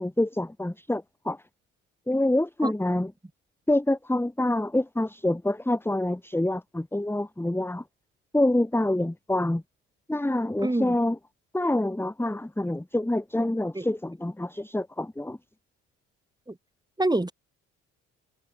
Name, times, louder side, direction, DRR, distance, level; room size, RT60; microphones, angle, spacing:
voice 1, 0.0-1.4 2.1-3.1 3.7-7.8 8.3-9.6 10.1-11.2 11.5-15.4, left 1 dB, 5° left, 2.7 m, -26 dB
voice 2, 10.6-11.0 13.7-13.9 16.5-16.6 17.0-17.3, right 2 dB, 10° right, 5.6 m, -26 dB
figure-of-eight pair, 50°, 39 cm